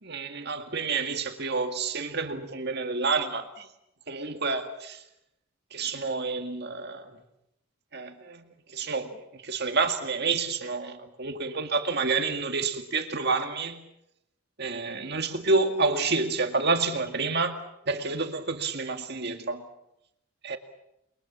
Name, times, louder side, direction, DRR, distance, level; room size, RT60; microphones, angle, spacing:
voice 1, 0.0-3.7 4.1-5.0 5.7-7.1 7.9-8.4 8.7-13.8 14.6-17.6 17.9-19.6 20.4-20.6, right 4 dB, 45° right, 2.0 m, -29 dB
29.5 x 22.5 x 7.4 m
head